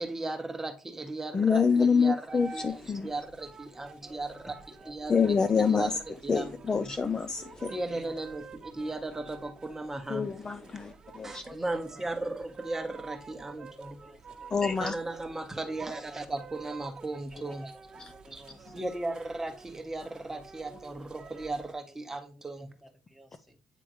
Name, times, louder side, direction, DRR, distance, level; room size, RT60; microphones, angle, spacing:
voice 1, 0.0-4.5 4.9-5.3 5.7-5.9 6.2-6.9 7.7-10.3 11.2-14.1 14.8-17.9 18.3-18.4 18.7-22.7, right 2 dB, 15° right, 1.1 m, -36 dB
voice 2, 1.3-3.1 5.1-5.9 6.3-7.7 10.1-11.4 14.5-15.0 17.4-17.5 18.0-18.1, left 5 dB, 30° left, 0.5 m, -26 dB
sound 1, 2.3-21.7, right 4 dB, 35° right, 1.2 m, -49 dB
voice 3, 3.8-5.2 7.6-8.1 8.8-8.9 10.1-10.4 11.4-12.0 13.7-14.5 15.5-15.6 17.4-17.7 18.1-18.9 20.2-20.4 20.7-21.4 21.9-22.0 22.3-23.6, equal, 5° left, 1.3 m, -54 dB
9.1 x 3.5 x 3.1 m
cardioid pair, 90°, 2 cm